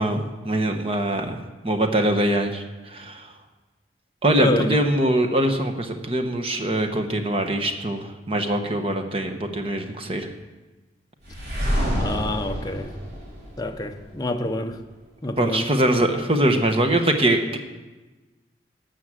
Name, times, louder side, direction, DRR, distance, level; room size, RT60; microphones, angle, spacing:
voice 1, 0.0-3.3 4.2-10.3 15.4-17.6, right 1 dB, 30° right, 1.0 m, -23 dB
voice 2, 4.4-4.8 12.0-12.9 13.6-14.8 15.2-15.7, left 1 dB, 20° left, 0.7 m, -27 dB
sound 1, 11.2-14.2, equal, 65° right, 4.3 m, -27 dB
12.5 x 6.4 x 7.5 m
head